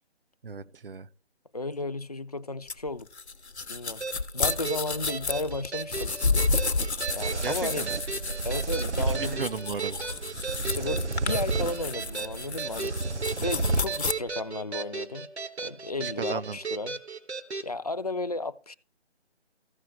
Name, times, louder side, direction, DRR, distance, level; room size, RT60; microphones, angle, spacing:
voice 1, 0.4-1.1 7.4-7.9 9.1-10.0 16.0-16.6, right 5 dB, 55° right, 0.5 m, -35 dB
voice 2, 1.5-3.1 3.7-4.0 4.3-6.1 7.1-7.9 8.4-9.5 10.7-13.0 13.4-15.3 15.6-17.0 17.6-18.7, left 2 dB, 35° left, 0.4 m, -34 dB
sound 1, 2.7-14.1, left 4 dB, 75° left, 0.9 m, -31 dB
sound 2, 4.0-17.7, right 4 dB, 75° right, 1.1 m, -36 dB
sound 3, 6.3-13.8, right 3 dB, 90° right, 0.7 m, -32 dB
14.5 x 6.0 x 4.4 m
figure-of-eight pair, 145°, 33 cm